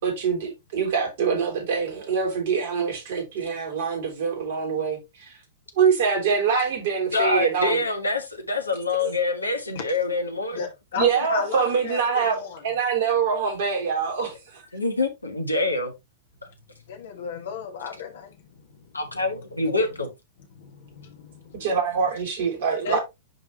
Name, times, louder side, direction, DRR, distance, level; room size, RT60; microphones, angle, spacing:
voice 1, 0.0-5.4 5.8-7.8 11.0-14.6 21.6-23.0, right 6 dB, 55° right, 3.0 m, -24 dB
voice 2, 7.1-10.6 14.7-15.9 18.9-20.1, left 3 dB, 85° left, 1.6 m, -25 dB
voice 3, 10.5-12.7 16.9-18.3 20.6-21.7 22.8-23.0, left 6 dB, 60° left, 1.4 m, -33 dB
10.5 x 3.6 x 2.9 m
figure-of-eight pair, 100°, 0 cm